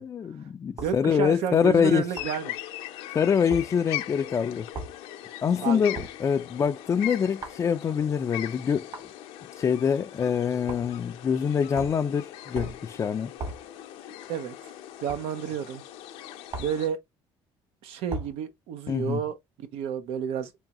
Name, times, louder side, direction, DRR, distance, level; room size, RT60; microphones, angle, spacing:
voice 1, 0.0-2.1 3.1-4.7 5.4-8.9 9.6-13.3 18.9-19.2, left 7 dB, 30° left, 0.3 m, -25 dB
sound 1, 0.8-1.0 2.2-2.4 3.5-3.7 4.7-5.0 6.0-6.2 7.4-7.6 8.9-9.1 10.7-11.0 11.8-12.1 12.5-12.9 13.4-13.7 15.1-15.3 16.5-16.8 18.1-18.4, right 2 dB, 50° right, 2.3 m, -37 dB
voice 2, 0.8-2.5 5.6-5.8 14.3-14.7 15.0-15.8 16.6-17.0 17.8-20.5, right 8 dB, 80° right, 0.7 m, -31 dB
sound 2, 2.1-16.9, left 13 dB, 80° left, 0.6 m, -40 dB
3.5 x 3.1 x 2.9 m
cardioid pair, 110°, 10 cm